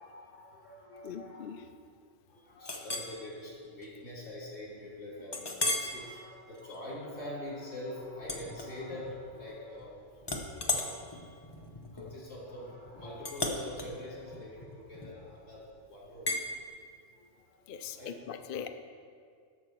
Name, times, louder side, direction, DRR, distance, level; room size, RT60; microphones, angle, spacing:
voice 1, 0.0-1.5 2.3-10.0 10.5-11.3 11.9-16.3 17.1-18.1, left 1 dB, 80° left, -5 dB, 3.2 m, -44 dB
voice 2, 1.0-1.6 17.7-18.7, left 8 dB, 60° left, 7 dB, 0.6 m, -40 dB
Chink clink, 2.6-3.1 3.6-3.8 4.3-4.4 5.3-6.0 6.5-6.7 8.2-9.2 9.5-9.9 10.2-15.3 16.3-16.5, left 2 dB, 25° left, 0.7 m, -36 dB
11.5 x 6.7 x 4.6 m, 2.1 s
omnidirectional pair, 1.3 m